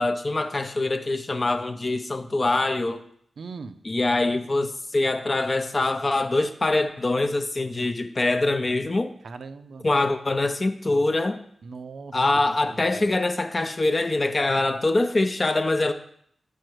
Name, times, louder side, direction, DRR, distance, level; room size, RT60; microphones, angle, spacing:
voice 1, 0.0-3.0 3.8-9.1 9.8-11.4 12.1-15.9, left 2 dB, 40° left, 8 dB, 0.5 m, -24 dB
voice 2, 3.4-3.8 9.2-9.9 11.6-12.2 12.7-13.1, right 4 dB, 75° right, 10 dB, 0.4 m, -40 dB
6.3 x 4.7 x 4.6 m, 0.65 s
cardioid pair, 65°, 0 cm